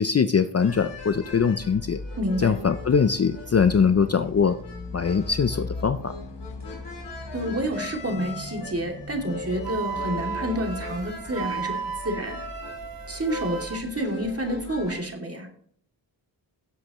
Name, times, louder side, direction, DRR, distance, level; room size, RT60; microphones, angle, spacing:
voice 1, 0.0-2.0 2.4-4.6 4.9-6.1, left 6 dB, 35° left, 11 dB, 0.5 m, -22 dB
sound 1, 0.6-15.0, left 3 dB, 60° left, 3.2 m, -38 dB
voice 2, 2.2-2.6 7.3-11.7 12.0-12.4 13.1-15.5, right 1 dB, 30° right, 2 dB, 2.7 m, -29 dB
Wind instrument woodwind instrument, 9.6-13.8, right 7 dB, 50° right, 1.0 m, -34 dB
16.5 x 7.5 x 3.1 m, 0.62 s
cardioid pair, 60°, 45 cm